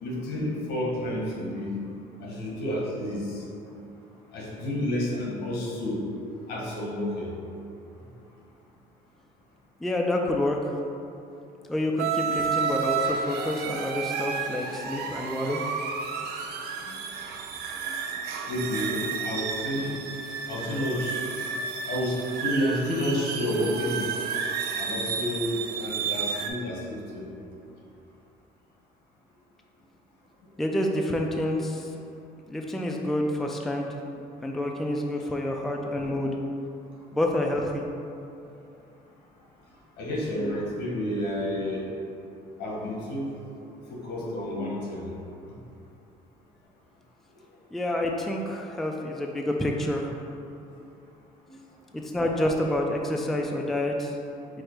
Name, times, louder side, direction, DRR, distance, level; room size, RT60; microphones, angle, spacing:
voice 1, 0.0-1.7 2.2-3.4 4.3-6.0 6.5-7.3 16.8-16.9 18.1-18.2 18.5-19.9 20.5-21.2 21.9-24.2 24.8-25.5 25.8-27.3 40.0-41.8 42.6-43.2 43.9-45.1, left 1 dB, 80° left, -4 dB, 1.1 m, -30 dB
voice 2, 9.8-10.7 11.7-15.7 30.6-31.9 32.5-33.9 34.2-36.4 37.1-37.8 47.7-50.2 51.9-54.1, left 1 dB, ahead, 1 dB, 0.3 m, -28 dB
sound 1, 12.0-26.5, right 6 dB, 70° right, 0.4 m, -31 dB
4.8 x 2.1 x 4.5 m, 2.7 s
cardioid pair, 110°, 17 cm